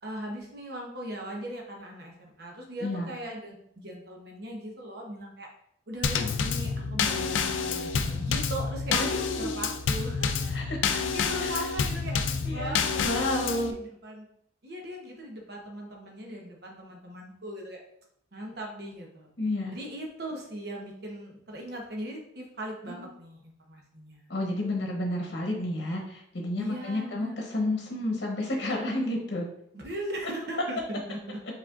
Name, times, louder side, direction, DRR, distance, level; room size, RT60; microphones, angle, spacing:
voice 1, 0.0-5.5 5.9-9.0 9.4-10.5 10.9-12.2 12.5-14.3 14.6-17.8 18.3-19.3 19.7-24.2 26.6-27.4 29.7-31.4, right 1 dB, 55° right, 0 dB, 1.0 m, -39 dB
voice 2, 2.8-3.1 8.9-9.6 10.5-10.8 11.4-11.6 12.4-12.7 13.0-13.7 19.4-19.8 22.9-23.0 24.3-29.5, left 1 dB, 60° left, 0 dB, 1.0 m, -31 dB
Drum kit / Snare drum / Bass drum, 6.0-13.7, left 5 dB, 85° left, 0.4 m, -28 dB
4.8 x 4.2 x 2.5 m, 0.71 s
head